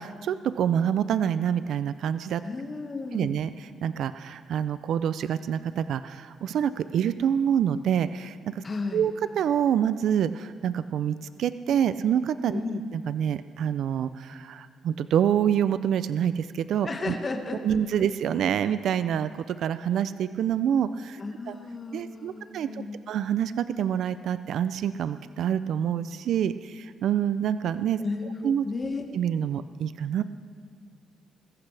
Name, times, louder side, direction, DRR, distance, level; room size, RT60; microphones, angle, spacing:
voice 1, 0.0-2.4 3.1-8.6 8.9-17.1 17.6-21.2 21.5-21.6 21.9-28.0 28.4-28.7 29.1-30.2, right 9 dB, 70° right, 13 dB, 0.4 m, -27 dB
voice 2, 2.4-3.4 8.6-9.1 12.5-12.8 16.8-17.6 21.2-23.0 28.0-29.0, left 3 dB, 35° left, 3 dB, 1.6 m, -33 dB
21.0 x 14.5 x 3.4 m, 2.2 s
cardioid pair, 90°, 0 cm